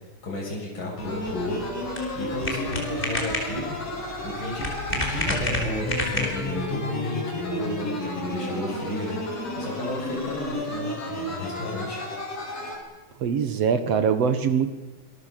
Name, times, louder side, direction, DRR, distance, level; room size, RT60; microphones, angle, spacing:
voice 1, 0.2-3.8 4.1-9.2 9.6-12.0, left 2 dB, 35° left, -3 dB, 7.3 m, -33 dB
sound 1, 1.0-12.8, left 1 dB, 55° left, 7.0 m, -32 dB
sound 2, 1.1-6.6, left 1 dB, 15° left, 4.8 m, -31 dB
voice 2, 13.2-14.7, right 7 dB, 60° right, 10 dB, 2.2 m, -23 dB
26.0 x 20.5 x 7.5 m, 1.2 s
omnidirectional pair, 3.6 m